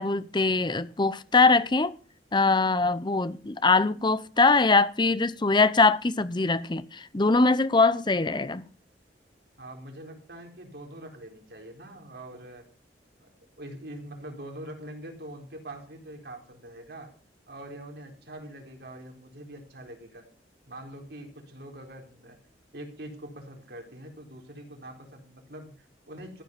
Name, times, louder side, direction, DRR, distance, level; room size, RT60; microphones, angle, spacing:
voice 1, 0.0-1.9 2.3-8.6, left 3 dB, 25° left, 0.7 m, -22 dB
voice 2, 9.6-12.7 13.2-13.3 13.6-17.1 17.5-20.3 20.7-22.4 22.7-26.4, right 1 dB, 65° right, 4.2 m, -43 dB
14.5 x 9.0 x 6.8 m
head